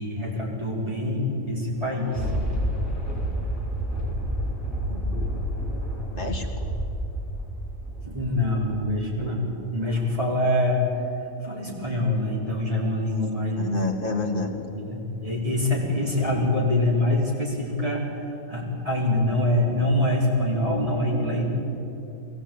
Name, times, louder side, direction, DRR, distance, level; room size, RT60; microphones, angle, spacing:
voice 1, 0.0-2.3 8.0-10.8 11.4-13.7 14.3-21.4, left 1 dB, 25° right, -4 dB, 5.0 m, -25 dB
Thunder, 1.7-9.2 9.7-9.8, equal, 5° right, 5.7 m, -29 dB
voice 2, 4.8-5.4 6.1-6.7 13.6-14.7, left 2 dB, 40° left, 2 dB, 2.3 m, -30 dB
21.5 x 18.0 x 9.0 m, 2.9 s
omnidirectional pair, 1.4 m